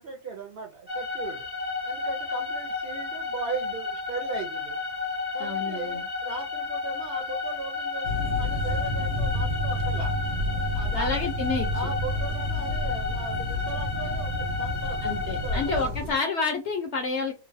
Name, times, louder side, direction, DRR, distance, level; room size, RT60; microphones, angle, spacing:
voice 1, 0.0-1.5 1.8-4.8 5.3-10.1 10.7-11.3 11.7-16.1, right 5 dB, 70° right, 2 dB, 0.5 m, -38 dB
sound 1, 0.9-15.8, left 4 dB, 25° left, 0.5 m, -32 dB
voice 2, 5.4-6.0 10.9-11.9 15.0-17.3, left 4 dB, 70° left, 4 dB, 0.7 m, -29 dB
sound 2, 8.0-16.1, left 1 dB, 85° right, 1.3 m, -30 dB
3.0 x 2.2 x 2.5 m, 0.29 s
omnidirectional pair, 1.6 m